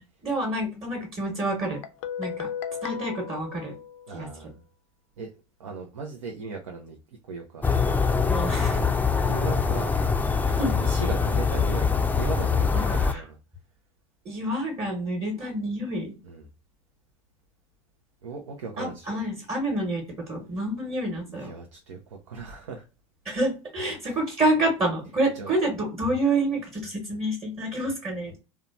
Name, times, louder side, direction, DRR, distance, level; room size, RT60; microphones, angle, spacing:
voice 1, 0.0-1.8 2.2-2.5 2.8-3.7 4.1-4.3 8.3-8.8 10.5-10.7 12.8-13.2 14.2-16.1 18.8-21.5 23.2-28.4, right 1 dB, 30° right, 1.1 m, -28 dB
Guitar, 1.6-4.4, left 8 dB, 70° left, 0.4 m, -36 dB
voice 2, 4.1-4.6 5.2-5.3 5.6-7.0 7.2-7.7 8.7-9.0 9.3-10.0 10.5-13.4 16.2-16.5 18.2-19.2 21.3-22.8 24.1-24.2 25.3-25.6, right 5 dB, 85° right, 0.5 m, -37 dB
sound 1, 7.6-13.1, left 5 dB, 10° left, 0.4 m, -23 dB
2.7 x 2.2 x 2.4 m
hypercardioid pair, 75°, 15 cm